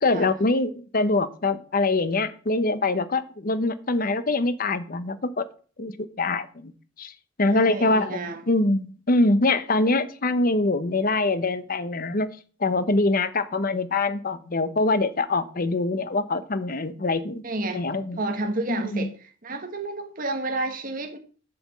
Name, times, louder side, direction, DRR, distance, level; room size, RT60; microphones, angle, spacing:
voice 1, 0.0-5.5 5.8-6.7 7.0-7.1 7.4-8.2 8.5-12.3 12.6-17.4 17.7-18.2 18.7-19.1, left 2 dB, 50° left, 0.9 m, -24 dB
voice 2, 7.5-8.4 17.4-19.1 19.4-21.2, right 2 dB, 45° right, 1.3 m, -30 dB
7.9 x 6.0 x 7.3 m
head